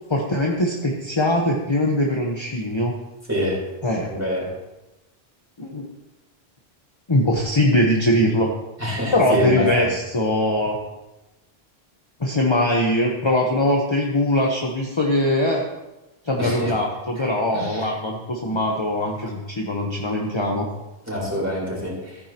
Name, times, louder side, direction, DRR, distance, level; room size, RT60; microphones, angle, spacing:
voice 1, 0.1-3.0 3.8-4.1 5.6-5.9 7.1-8.5 9.1-10.8 12.2-15.6 16.2-20.7, left 1 dB, 25° left, 0 dB, 1.1 m, -21 dB
voice 2, 4.0-4.4 8.8-9.9 16.4-16.7 17.5-17.6 21.1-21.9, left 1 dB, 15° right, -5 dB, 4.2 m, -25 dB
15.0 x 9.4 x 3.0 m, 0.99 s
omnidirectional pair, 1.1 m